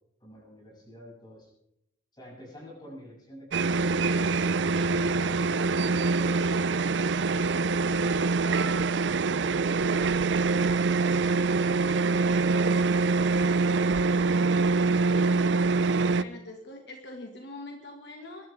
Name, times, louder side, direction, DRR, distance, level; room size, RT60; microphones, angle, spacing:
voice 1, 0.2-1.5 2.1-4.0, equal, 25° left, -3 dB, 7.2 m, -48 dB
sound 1, 3.5-16.2, right 4 dB, 70° right, 0.5 m, -24 dB
voice 2, 14.7-15.7 16.1-18.5, left 2 dB, 65° left, 2 dB, 1.9 m, -44 dB
22.5 x 12.5 x 3.6 m, 0.79 s
head